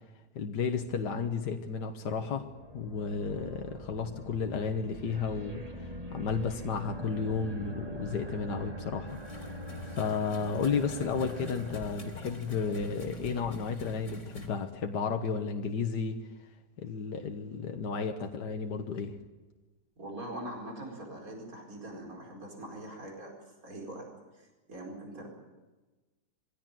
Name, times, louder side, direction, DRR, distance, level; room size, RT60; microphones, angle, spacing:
voice 1, 0.4-2.5 2.7-16.2 16.8-19.2, left 5 dB, 75° left, 4 dB, 1.8 m, -33 dB
sound 1, 2.2-12.7, equal, 20° right, 2.2 m, -43 dB
sound 2, 9.1-14.5, left 1 dB, 45° left, 3.5 m, -45 dB
voice 2, 20.0-23.3 23.6-24.1 24.4-25.3, right 1 dB, 55° right, 0 dB, 5.1 m, -42 dB
23.5 x 16.5 x 9.2 m, 1.2 s
omnidirectional pair, 1.8 m